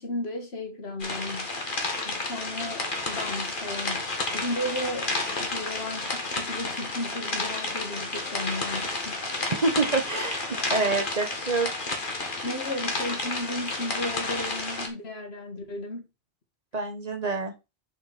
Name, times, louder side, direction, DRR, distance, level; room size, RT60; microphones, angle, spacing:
voice 1, 0.0-1.6 2.0-9.2 12.2-16.1, left 1 dB, 80° left, 2.0 m, -35 dB
sound 1, 1.0-14.9, left 2 dB, 55° left, 1.8 m, -31 dB
voice 2, 9.6-12.0 16.7-17.5, right 3 dB, 40° right, 1.2 m, -27 dB
6.7 x 6.4 x 4.1 m
omnidirectional pair, 1.0 m